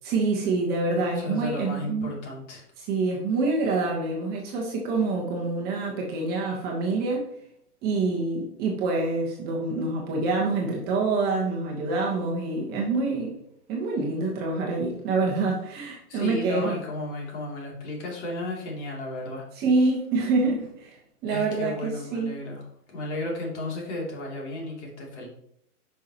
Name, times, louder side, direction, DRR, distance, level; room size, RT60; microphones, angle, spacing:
voice 1, 0.0-2.1 2.8-7.3 7.8-13.3 13.7-16.8 19.5-21.0 21.2-22.3, right 3 dB, 20° right, -2 dB, 1.1 m, -26 dB
voice 2, 1.1-2.6 16.1-19.5 21.3-25.3, left 1 dB, 45° left, -2 dB, 3.0 m, -34 dB
9.3 x 5.7 x 3.0 m, 0.71 s
hypercardioid pair, 145°, 46 cm